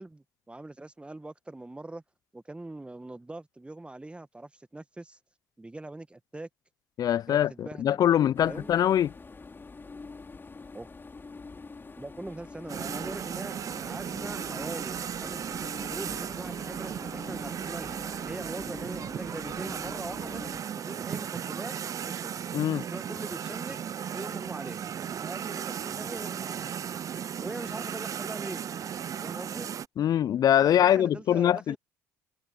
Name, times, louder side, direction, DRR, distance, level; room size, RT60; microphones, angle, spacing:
voice 1, 0.0-2.0 2.3-5.2 5.6-6.5 7.3-8.0 8.4-8.7 10.7-10.9 12.0-20.4 20.7-21.7 22.0-22.3 22.7-23.8 24.1-26.7 27.4-28.6 29.2-29.7 30.8-31.8, right 2 dB, 10° right, 1.7 m, -42 dB
voice 2, 7.0-9.1 22.5-22.8 30.0-31.8, left 10 dB, 50° left, 0.6 m, -23 dB
sound 1, 8.3-20.6, left 4 dB, 25° left, 3.7 m, -45 dB
sound 2, 12.7-29.9, right 8 dB, 40° right, 0.6 m, -36 dB
hypercardioid pair, 55°, 9 cm